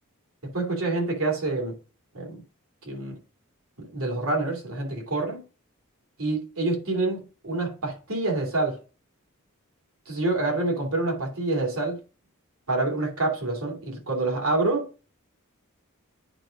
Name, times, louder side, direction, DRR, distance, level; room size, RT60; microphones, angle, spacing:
voice 1, 0.4-1.7 2.1-2.4 2.8-3.2 3.8-5.4 6.2-8.8 10.1-12.0 12.7-14.9, right 2 dB, 70° right, 2.9 m, -27 dB
8.9 x 3.8 x 5.2 m
head